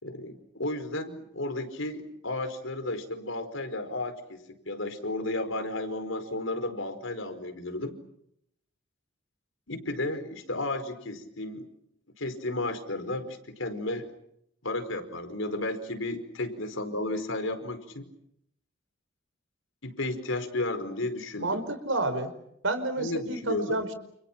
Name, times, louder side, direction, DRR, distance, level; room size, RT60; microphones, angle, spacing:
voice 1, 0.0-7.9 9.7-11.7 12.2-14.1 14.6-18.1 19.8-21.6 23.0-23.8, left 2 dB, 75° left, 8 dB, 5.0 m, -33 dB
voice 2, 21.4-22.3 22.6-23.9, right 2 dB, 70° right, 10 dB, 5.0 m, -29 dB
30.0 x 29.5 x 6.1 m, 0.75 s
head